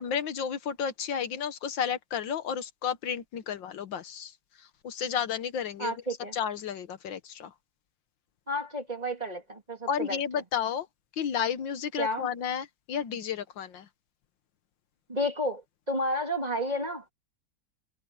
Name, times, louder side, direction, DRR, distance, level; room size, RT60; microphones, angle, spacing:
voice 1, 0.0-4.3 4.8-5.9 6.3-7.5 9.9-10.9 11.2-13.9, left 8 dB, 75° left, 1.7 m, -32 dB
voice 2, 5.8-6.3 8.5-10.2 12.0-12.3 15.1-17.0, equal, 20° right, 2.8 m, -31 dB
omnidirectional pair, 2.1 m